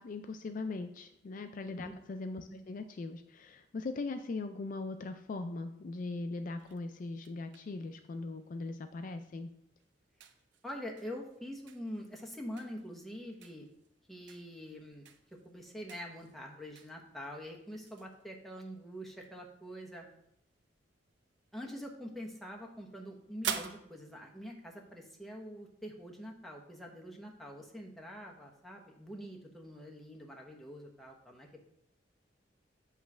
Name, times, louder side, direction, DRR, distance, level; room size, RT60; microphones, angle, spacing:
voice 1, 0.0-9.5, left 3 dB, 45° left, 8 dB, 0.3 m, -40 dB
sound 1, 6.6-25.4, right 7 dB, 80° right, 0.6 m, -49 dB
voice 2, 10.6-13.7 14.1-20.0 21.5-31.6, equal, ahead, -1 dB, 1.0 m, -45 dB
8.1 x 3.1 x 6.0 m, 0.75 s
head